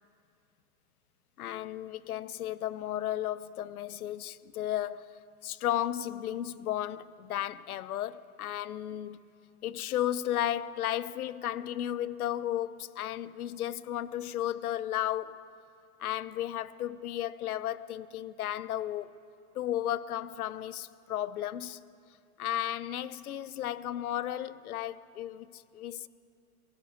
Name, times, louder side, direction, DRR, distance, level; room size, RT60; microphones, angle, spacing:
voice 1, 1.4-9.2 9.6-15.5 16.0-19.1 19.5-21.8 22.4-26.1, left 12 dB, 75° left, 0.9 m, -34 dB
25.0 x 16.5 x 7.3 m
hypercardioid pair, 115°, 44 cm